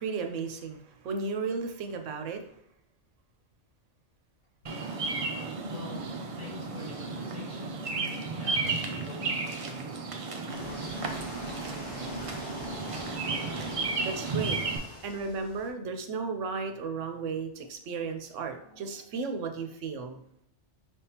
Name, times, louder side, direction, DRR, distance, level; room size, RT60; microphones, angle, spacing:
voice 1, 0.0-2.4 14.0-14.6 15.0-20.2, right 4 dB, 90° right, 5 dB, 1.0 m, -34 dB
Bird vocalization bird call bird song, 4.7-14.8, right 3 dB, 50° right, 0.4 m, -33 dB
voice 2, 5.7-9.8 10.5-11.5 12.1-12.4, left 1 dB, 75° left, -5 dB, 2.4 m, -46 dB
sound 1, 10.5-15.7, left 1 dB, 20° left, 1.0 m, -43 dB
4.9 x 3.6 x 2.9 m, 0.73 s
omnidirectional pair, 1.2 m